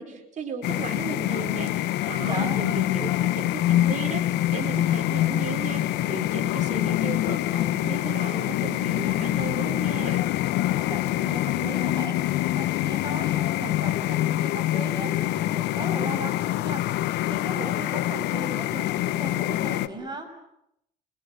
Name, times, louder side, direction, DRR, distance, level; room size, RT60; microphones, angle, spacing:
voice 1, 0.0-10.2, right 5 dB, 45° right, 3 dB, 5.0 m, -36 dB
sound 1, 0.6-19.9, left 14 dB, 85° left, 1.2 m, -25 dB
voice 2, 2.2-2.6 10.5-17.0 17.3-20.3, right 2 dB, 25° right, 4 dB, 6.9 m, -37 dB
28.0 x 22.5 x 7.8 m, 0.78 s
cardioid pair, 110°, 17 cm